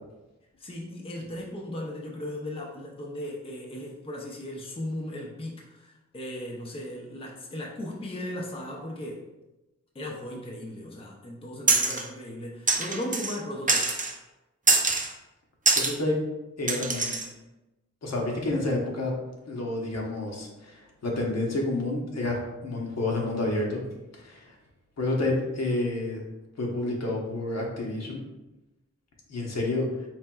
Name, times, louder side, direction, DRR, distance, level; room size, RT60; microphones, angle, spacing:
voice 1, 0.6-9.3 9.9-13.9, left 1 dB, 20° left, -2 dB, 0.5 m, -37 dB
sound 1, 11.7-12.1 12.7-13.4 13.7-14.1 14.7-15.1 15.7-15.9 16.7-17.3, right 3 dB, 30° right, 0.4 m, -24 dB
voice 2, 15.8-16.2 16.6-17.2 18.0-19.1 19.5-23.8 24.1-24.5 25.0-26.2 26.6-28.2 29.3-29.9, left 2 dB, 60° left, -1 dB, 0.9 m, -29 dB
4.4 x 3.2 x 2.3 m, 1.0 s
wide cardioid pair, 95°, 29 cm